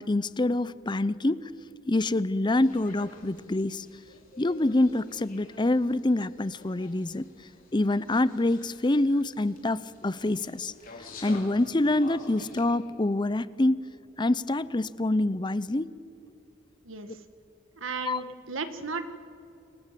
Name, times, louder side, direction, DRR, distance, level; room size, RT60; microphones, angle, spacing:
voice 1, 0.0-1.5 1.8-3.9 4.4-7.3 7.7-10.7 11.2-13.8 14.2-15.9 18.0-18.3, left 2 dB, 20° left, 17 dB, 0.6 m, -26 dB
sound 1, 2.6-12.7, left 4 dB, 45° left, 4.7 m, -50 dB
voice 2, 16.8-17.2 17.8-19.0, right 4 dB, 80° right, 10 dB, 1.9 m, -35 dB
29.5 x 25.0 x 7.6 m, 2.8 s
head